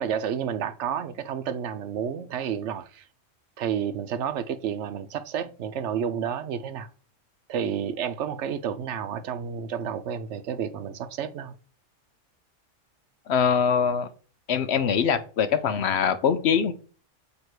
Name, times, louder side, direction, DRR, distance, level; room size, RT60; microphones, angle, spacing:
voice 1, 0.0-3.1 3.6-6.9 7.5-11.5, right 8 dB, 70° right, 0.9 m, -30 dB
voice 2, 13.3-14.1 14.5-16.7, left 7 dB, 65° left, 0.8 m, -23 dB
8.0 x 2.9 x 4.5 m
omnidirectional pair, 1.3 m